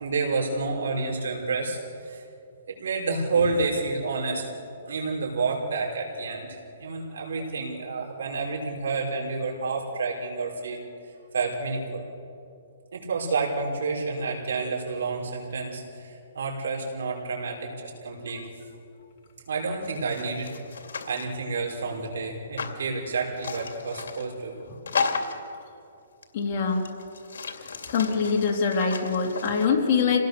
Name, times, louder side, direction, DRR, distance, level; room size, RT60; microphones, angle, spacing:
voice 1, 0.0-2.2 2.7-4.5 4.9-10.8 11.3-12.0 12.9-18.4 19.5-20.5 21.1-24.5, right 4 dB, 75° right, -1 dB, 5.5 m, -29 dB
sound 1, 19.8-21.3 22.6-22.8 23.4-24.3 24.9-25.5 26.2-26.3 26.7-29.7, left 5 dB, 80° left, 2.5 m, -34 dB
voice 2, 26.3-26.9 27.9-30.2, left 5 dB, 35° left, 0 dB, 3.4 m, -24 dB
27.0 x 18.5 x 6.9 m, 2.5 s
hypercardioid pair, 160°, 0 cm